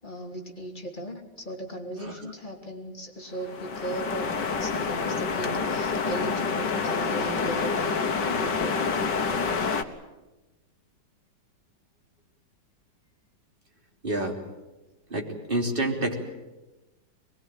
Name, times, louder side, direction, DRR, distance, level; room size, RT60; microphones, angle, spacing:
voice 1, 0.0-8.8, right 1 dB, 25° left, 1 dB, 3.3 m, -37 dB
sound 1, 3.4-9.8, left 5 dB, 75° left, 2.0 m, -27 dB
voice 2, 14.0-14.4 15.1-16.1, right 1 dB, 30° right, 0 dB, 3.7 m, -28 dB
23.5 x 21.0 x 9.1 m, 1.1 s
omnidirectional pair, 1.9 m